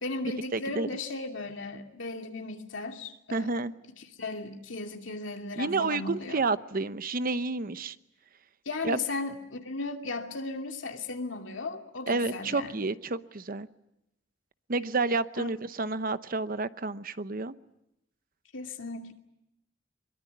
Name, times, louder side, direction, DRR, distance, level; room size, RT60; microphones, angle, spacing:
voice 1, 0.0-3.5 4.0-6.4 8.7-12.8 15.4-15.5 18.5-19.1, left 3 dB, 75° left, 4 dB, 2.6 m, -36 dB
voice 2, 0.5-0.9 3.3-3.7 5.6-7.9 8.8-9.0 12.1-13.7 14.7-17.5, right 3 dB, 50° right, 13 dB, 0.9 m, -30 dB
22.5 x 22.5 x 9.4 m, 0.85 s
head